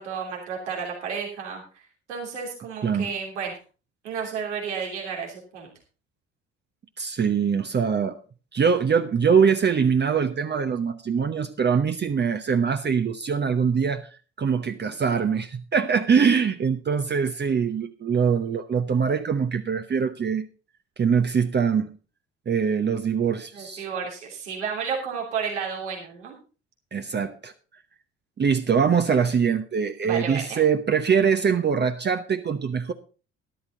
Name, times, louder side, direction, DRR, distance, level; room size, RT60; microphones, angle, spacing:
voice 1, 0.0-1.8 2.1-3.5 4.0-5.7 23.5-26.4 30.0-30.6, right 6 dB, 80° right, -1 dB, 3.1 m, -32 dB
voice 2, 7.0-8.2 8.5-14.0 14.4-20.4 21.0-21.9 22.5-23.9 26.9-27.5 28.4-32.9, right 6 dB, 30° right, 7 dB, 1.0 m, -23 dB
12.5 x 11.5 x 3.8 m, 0.35 s
hypercardioid pair, 55°, 35 cm